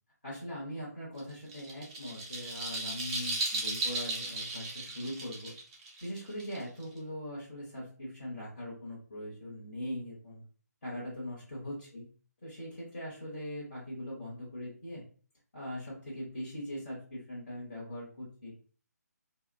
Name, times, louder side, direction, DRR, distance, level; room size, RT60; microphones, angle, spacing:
voice 1, 0.2-5.5 6.0-10.4 10.8-12.1 12.4-15.0 15.5-18.5, equal, 35° left, -7 dB, 1.1 m, -41 dB
sound 1, 1.2-7.0, right 2 dB, 15° right, 0.4 m, -36 dB
2.7 x 2.0 x 2.5 m, 0.40 s
figure-of-eight pair, 150°, 10 cm